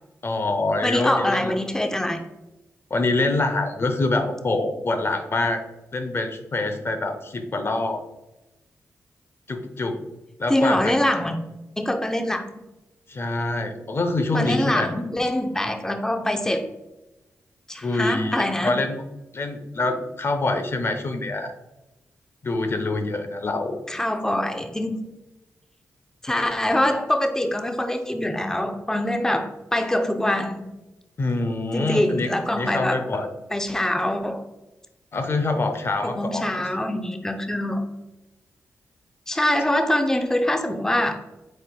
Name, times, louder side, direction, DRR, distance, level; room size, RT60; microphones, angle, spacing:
voice 1, 0.2-1.5 2.9-5.6 5.9-8.0 9.5-10.0 10.4-10.9 13.1-14.9 17.8-19.0 19.3-21.5 22.4-23.8 31.2-33.3 35.1-36.6, left 2 dB, 45° left, 7 dB, 0.6 m, -25 dB
voice 2, 0.8-2.2 10.5-11.4 11.8-12.4 14.3-16.6 17.7-18.7 23.9-25.1 26.2-30.7 31.7-33.1 33.5-34.4 36.0-37.8 39.3-41.2, left 1 dB, 10° left, 5 dB, 0.6 m, -24 dB
4.5 x 4.3 x 2.2 m, 1.0 s
cardioid pair, 50°, 6 cm